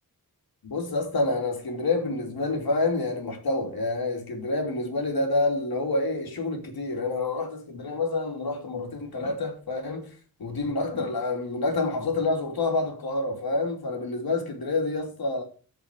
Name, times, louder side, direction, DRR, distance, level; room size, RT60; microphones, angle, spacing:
voice 1, 0.6-10.1 10.4-15.4, left 2 dB, 75° left, 3.1 m, -28 dB
13.5 x 5.0 x 8.4 m
wide cardioid pair, 125°, 37 cm